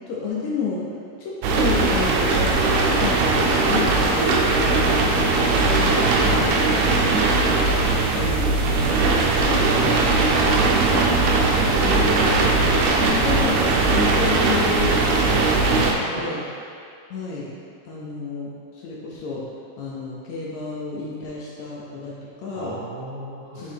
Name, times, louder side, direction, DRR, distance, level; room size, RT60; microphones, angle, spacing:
voice 1, 0.1-5.3 5.8-8.6 9.2-11.2 11.8-12.4 13.0-14.9 15.2-15.4 16.0-16.4 17.1-17.5 17.9-22.8 23.6-23.7, left 4 dB, 75° left, -5 dB, 1.8 m, -31 dB
sound 1, 1.4-15.9, right 3 dB, 90° right, 1.5 m, -19 dB
voice 2, 4.1-4.5 11.2-11.4 11.6-12.8 16.1-16.4 22.5-23.7, right 2 dB, 70° right, -10 dB, 0.9 m, -34 dB
7.4 x 3.8 x 3.4 m, 2.3 s
omnidirectional pair, 3.7 m